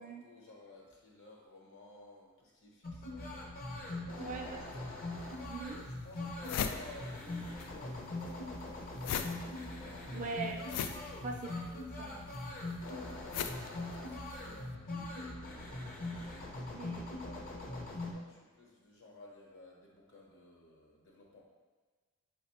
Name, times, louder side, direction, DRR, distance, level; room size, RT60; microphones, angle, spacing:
voice 1, 0.0-4.9 5.8-10.2 11.0-11.8 12.7-21.5, left 3 dB, 55° left, -2 dB, 0.9 m, -55 dB
sound 1, 2.8-18.1, left 2 dB, 40° left, 0.6 m, -42 dB
voice 2, 4.1-4.6 5.5-5.8 10.1-10.7 11.2-12.3 16.7-17.2, right 4 dB, 35° right, 2 dB, 0.4 m, -42 dB
sound 2, 5.2-5.3 5.8-5.9 6.1-7.7 8.0-14.5, left 7 dB, 85° left, 0.3 m, -40 dB
5.3 x 2.1 x 4.2 m, 1.4 s
head